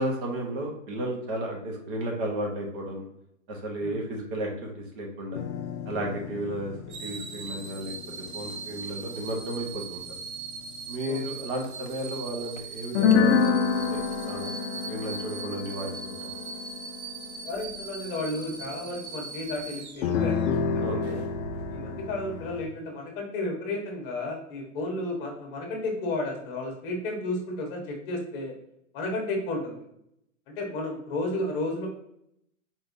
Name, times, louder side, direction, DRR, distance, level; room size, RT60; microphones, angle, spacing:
voice 1, 0.0-3.0 3.5-5.4 5.9-6.7 7.0-7.9 8.3-10.0 10.9-14.0 14.2-14.5 14.8-16.3 20.8-21.2, right 1 dB, 40° right, 0 dB, 1.1 m, -33 dB
sound 1, 5.3-11.1 11.6-11.9 12.6-12.7 12.9-19.0 20.0-22.6, left 6 dB, 55° left, 0.6 m, -29 dB
sound 2, 6.9-20.5 21.0-21.2, right 5 dB, 85° right, 0.9 m, -40 dB
voice 2, 17.4-21.2 21.7-28.5 28.9-29.8 30.5-31.9, left 2 dB, 40° left, 1 dB, 1.2 m, -33 dB
4.5 x 3.4 x 2.6 m, 0.75 s
hypercardioid pair, 150°, 42 cm